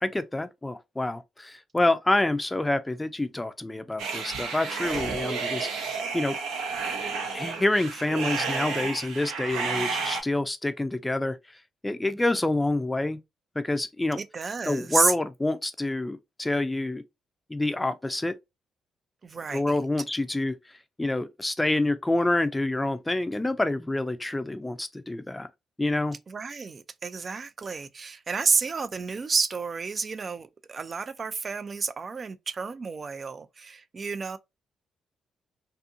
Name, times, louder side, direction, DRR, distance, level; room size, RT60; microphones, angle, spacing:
voice 1, 0.0-6.4 7.3-11.4 11.8-13.2 13.6-14.2 14.7-17.0 17.5-18.3 19.5-20.6 21.0-25.5 25.8-26.2, left 2 dB, 15° left, 0.4 m, -27 dB
sound 1, 4.0-10.2, right 5 dB, 80° right, 0.7 m, -31 dB
voice 2, 14.2-15.1 19.2-19.9 26.3-34.4, right 5 dB, 45° right, 0.4 m, -30 dB
2.6 x 2.6 x 2.4 m
hypercardioid pair, 50°, 0 cm